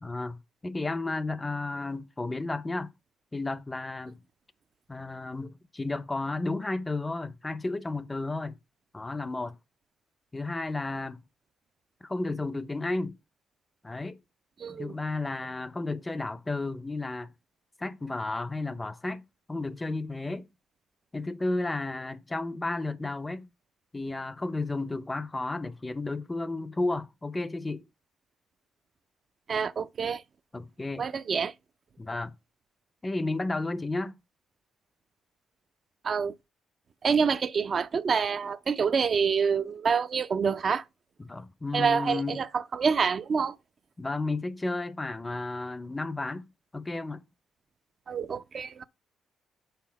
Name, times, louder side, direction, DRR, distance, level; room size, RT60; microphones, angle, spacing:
voice 1, 0.0-2.9 3.3-4.2 4.9-8.6 8.9-9.6 10.3-11.2 12.0-13.2 13.8-14.2 14.7-17.3 17.8-20.5 21.1-23.5 23.9-27.8 30.5-31.1 32.0-32.3 33.0-34.2 41.2-42.4 44.0-46.5 46.7-47.2, left 2 dB, 15° left, 0.5 m, -33 dB
voice 2, 14.6-14.9 29.5-30.2 31.0-31.5 36.0-36.3 37.0-40.8 41.7-42.5 42.7-43.6 48.1-48.8, right 6 dB, 45° right, 0.4 m, -27 dB
5.8 x 4.0 x 6.0 m
cardioid pair, 90°, 0 cm